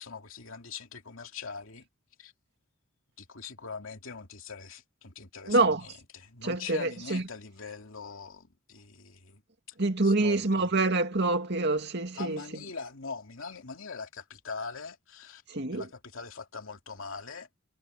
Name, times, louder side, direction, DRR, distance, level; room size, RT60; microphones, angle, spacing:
voice 1, 0.0-1.9 2.2-2.3 3.2-9.4 10.0-10.7 12.1-15.4 15.7-17.5, left 5 dB, 75° left, 2.5 m, -42 dB
voice 2, 5.5-5.8 6.4-7.2 9.8-12.4 15.5-15.9, right 2 dB, 55° right, 2.3 m, -26 dB
head